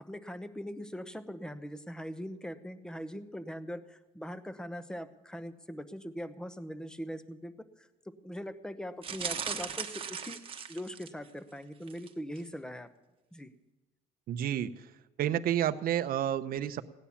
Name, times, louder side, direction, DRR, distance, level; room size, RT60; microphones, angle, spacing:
voice 1, 0.0-10.4 10.7-12.9 13.3-13.5, equal, 5° left, 12 dB, 0.9 m, -41 dB
sound 1, 9.0-11.3 11.8-12.1 12.4-12.5, right 6 dB, 35° right, 1.2 m, -38 dB
voice 2, 14.3-14.9 15.2-16.8, right 11 dB, 60° right, 9 dB, 0.8 m, -30 dB
17.0 x 10.0 x 7.2 m, 1.1 s
cardioid pair, 110°, 17 cm